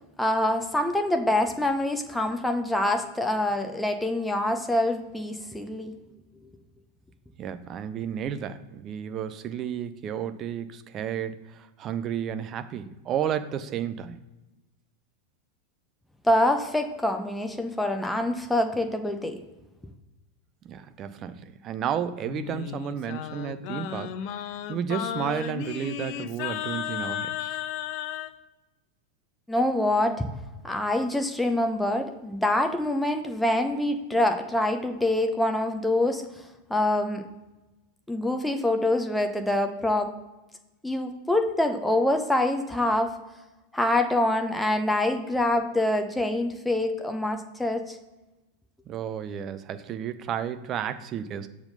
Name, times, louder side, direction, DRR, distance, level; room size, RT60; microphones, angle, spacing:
voice 1, 0.2-5.9 16.2-19.4 29.5-30.2 30.6-36.3 36.7-37.3 38.1-40.1 40.8-43.1 43.7-48.0, left 1 dB, 5° left, 5 dB, 0.7 m, -25 dB
voice 2, 7.4-14.2 20.6-24.4 24.7-27.6 48.9-51.5, right 9 dB, 30° right, 11 dB, 0.5 m, -32 dB
Singing, 22.3-28.3, left 11 dB, 45° left, 0.4 m, -34 dB
6.9 x 3.6 x 5.5 m, 1.1 s
figure-of-eight pair, 90°, 0 cm